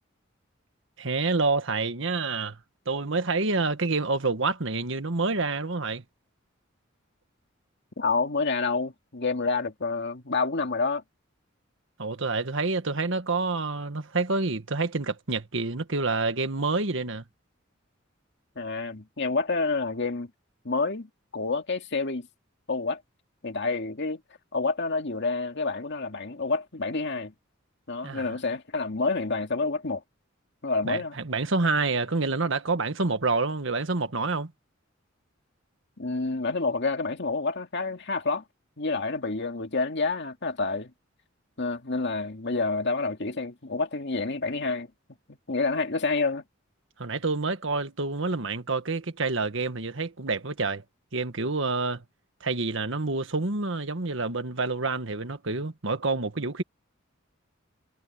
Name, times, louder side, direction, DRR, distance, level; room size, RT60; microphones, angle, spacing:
voice 1, 1.0-2.6 2.8-6.0 12.0-17.2 28.0-28.3 30.8-34.5 47.0-50.8 51.1-52.0 52.4-56.6, right 3 dB, 70° right, 1.6 m, -28 dB
voice 2, 8.0-11.0 18.6-20.3 20.6-22.3 22.7-23.0 23.4-24.2 24.5-27.3 27.9-30.0 30.6-31.2 36.0-38.4 38.8-40.9 41.6-44.9 45.3-46.4, left 3 dB, 60° left, 2.2 m, -28 dB
head